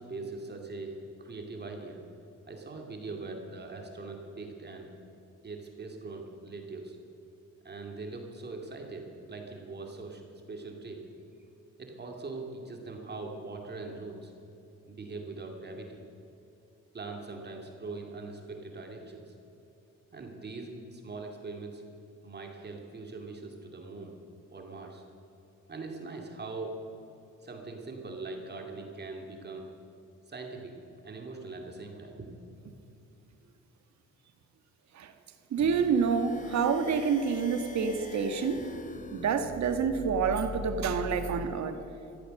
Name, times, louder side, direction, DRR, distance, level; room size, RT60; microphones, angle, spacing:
voice 1, 0.0-2.1 2.5-4.9 5.4-7.0 7.6-11.0 11.8-14.3 14.9-16.0 16.9-19.3 20.1-21.8 22.2-24.2 24.5-25.0 25.7-26.8 27.4-29.7 30.3-30.8 31.0-32.3 38.6-38.7, right 3 dB, 35° right, 2 dB, 2.4 m, -41 dB
voice 2, 35.5-38.6 39.1-41.8, right 6 dB, 65° right, 8 dB, 1.5 m, -28 dB
sound 1, 35.6-41.5, left 4 dB, 25° left, 1.4 m, -42 dB
15.5 x 13.5 x 6.5 m, 2.8 s
cardioid pair, 90°, 30 cm